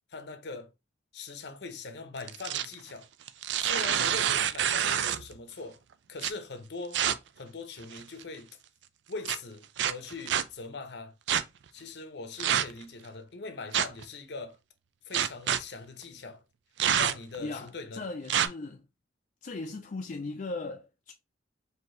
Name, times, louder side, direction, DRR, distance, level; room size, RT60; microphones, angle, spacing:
voice 1, 0.1-0.7 1.1-3.1 3.6-5.8 6.1-7.0 7.4-8.5 9.1-11.1 11.7-14.6 15.0-16.4 16.9-18.1, left 3 dB, 65° left, 0.8 m, -41 dB
sound 1, 2.2-2.7 3.3-5.3 6.2-6.3 6.9-7.1 7.8-8.2 9.3-9.4 9.8-10.4 11.3-11.4 12.4-12.8 13.7-14.0 15.1-15.6 16.8-17.4 18.3-18.5, right 9 dB, 70° right, 0.4 m, -27 dB
voice 2, 17.4-18.8 19.4-21.1, left 3 dB, 45° left, 0.4 m, -38 dB
4.5 x 2.7 x 3.2 m
head